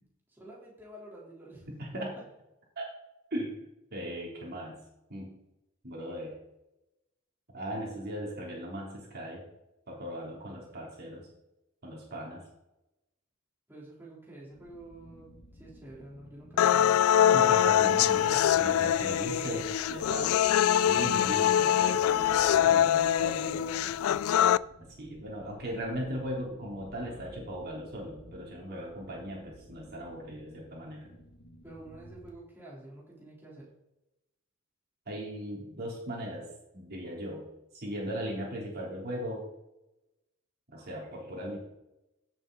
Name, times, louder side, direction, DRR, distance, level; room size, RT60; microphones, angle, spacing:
voice 1, 0.3-1.7 13.7-15.3 15.5-17.0 31.6-33.7, right 1 dB, 10° right, -6 dB, 3.8 m, -48 dB
voice 2, 1.7-2.2 2.8-2.9 3.3-3.6 3.9-4.8 5.1-5.4 5.8-6.3 7.5-9.4 9.9-11.2 11.8-12.4 17.3-20.5 20.8-24.0 24.8-31.1 35.1-37.5 37.7-39.5 40.7-41.6, equal, 50° right, -3 dB, 3.6 m, -38 dB
sound 1, 14.5-32.3, equal, 50° left, 1.9 m, -54 dB
sound 2, 16.6-24.6, left 10 dB, 70° left, 0.3 m, -24 dB
16.0 x 7.5 x 4.1 m, 0.94 s
head